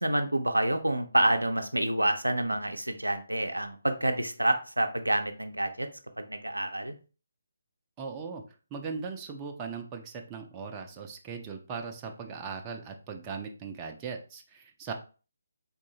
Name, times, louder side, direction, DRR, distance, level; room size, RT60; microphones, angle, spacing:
voice 1, 0.0-5.9 6.2-6.9, right 1 dB, 85° right, 6 dB, 0.5 m, -28 dB
voice 2, 8.0-8.4 8.7-14.9, right 5 dB, 20° right, 3 dB, 0.4 m, -39 dB
3.5 x 2.6 x 2.8 m, 0.35 s
figure-of-eight pair, 145°, 0 cm